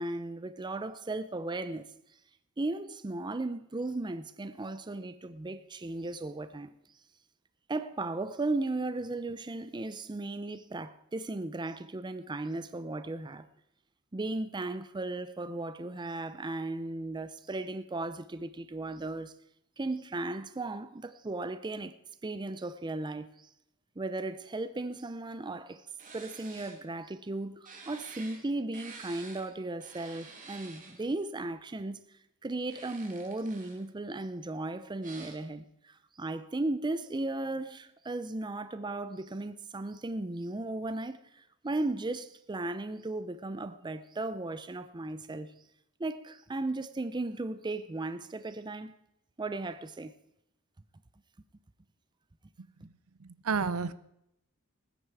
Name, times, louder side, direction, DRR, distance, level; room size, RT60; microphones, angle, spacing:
voice 1, 0.0-1.8 2.6-6.7 7.7-13.5 14.1-19.3 19.8-22.0 22.2-23.5 24.0-25.8 26.1-32.0 32.4-45.5 46.0-48.9 49.4-50.1, right 2 dB, 20° right, 0.5 m, -36 dB
sound 1, 26.0-26.8 27.6-28.4 28.7-29.4 29.8-31.0 32.5-33.8 35.0-35.3, right 4 dB, 35° right, 2.4 m, -49 dB
voice 2, 53.2-53.9, right 5 dB, 70° right, 0.6 m, -31 dB
20.0 x 9.6 x 4.8 m
head